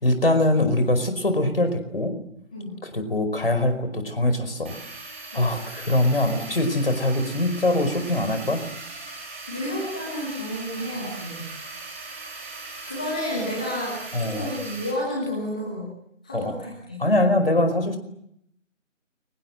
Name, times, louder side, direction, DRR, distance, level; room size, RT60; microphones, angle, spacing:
voice 1, 0.0-2.1 2.8-4.7 5.3-8.6 14.1-14.5 16.3-16.6 17.0-18.0, left 1 dB, 45° left, 9 dB, 5.0 m, -23 dB
sound 1, 4.6-14.9, right 3 dB, 10° right, 3.2 m, -39 dB
voice 2, 9.5-11.4 12.8-15.9 16.2-17.0, left 1 dB, 5° left, -4 dB, 1.6 m, -31 dB
29.5 x 24.5 x 7.8 m, 0.75 s
figure-of-eight pair, 165°, 39 cm